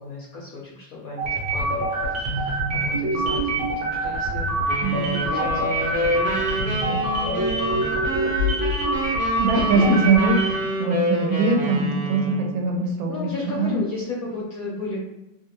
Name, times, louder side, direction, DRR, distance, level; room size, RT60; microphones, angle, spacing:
voice 1, 0.0-8.5 8.8-9.2 9.5-10.0 10.4-10.7 13.1-15.0, left 3 dB, 70° left, -6 dB, 0.8 m, -34 dB
sound 1, 1.2-10.7, right 1 dB, 60° right, 1.0 m, -25 dB
sound 2, 4.7-12.6, right 1 dB, 15° right, 0.7 m, -28 dB
voice 2, 9.4-13.3 13.6-13.8, right 3 dB, 80° right, 2 dB, 1.3 m, -21 dB
3.2 x 2.3 x 2.9 m, 0.88 s
omnidirectional pair, 2.2 m